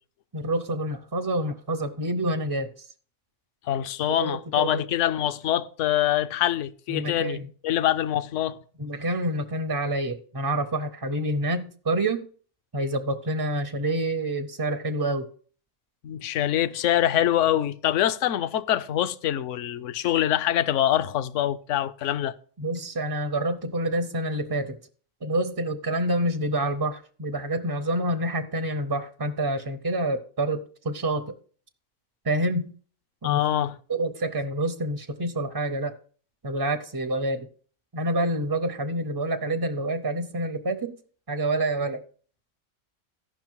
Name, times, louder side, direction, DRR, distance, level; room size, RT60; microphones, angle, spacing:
voice 1, 0.3-2.9 4.2-4.8 6.9-7.5 8.8-12.3 12.7-15.3 22.6-24.8 25.2-31.4 32.2-32.7 33.2-33.4 33.9-36.0 36.4-37.5 37.9-41.0 41.3-42.0, right 1 dB, 35° right, 0.4 m, -27 dB
voice 2, 3.7-7.4 7.6-8.6 16.0-22.3 33.2-33.7, left 12 dB, 70° left, 0.9 m, -24 dB
14.5 x 5.7 x 4.6 m
omnidirectional pair, 1.4 m